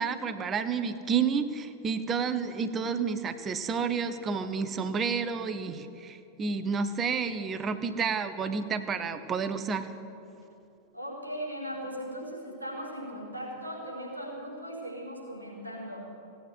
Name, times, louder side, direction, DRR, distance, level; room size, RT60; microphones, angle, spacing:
voice 1, 0.0-9.9, right 5 dB, 25° right, 10 dB, 0.9 m, -30 dB
voice 2, 10.9-16.0, equal, 90° left, -4 dB, 4.0 m, -38 dB
16.5 x 9.4 x 8.2 m, 2.8 s
figure-of-eight pair, 90°, 0 cm